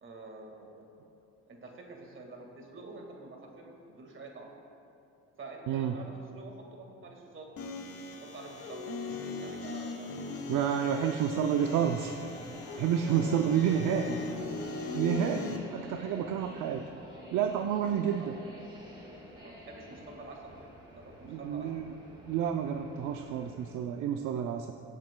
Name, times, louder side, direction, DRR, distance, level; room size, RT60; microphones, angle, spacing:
voice 1, 0.0-0.9 1.5-4.5 5.4-7.5 8.2-9.0 9.2-10.2 10.7-11.8 13.8-14.1 15.8-16.3 18.1-18.3 19.4-21.8, right 3 dB, 40° right, 1 dB, 1.8 m, -47 dB
sound 1, 7.6-15.6, left 3 dB, 50° left, 1.1 m, -39 dB
voice 2, 10.5-12.1 12.8-14.2 14.9-16.8 17.3-18.4 21.2-21.9 22.3-24.7, right 9 dB, 85° right, 5 dB, 0.5 m, -29 dB
sound 2, 11.7-23.7, equal, 15° right, 2.6 m, -50 dB
22.5 x 7.5 x 2.2 m, 2.8 s
cardioid pair, 90°, 30 cm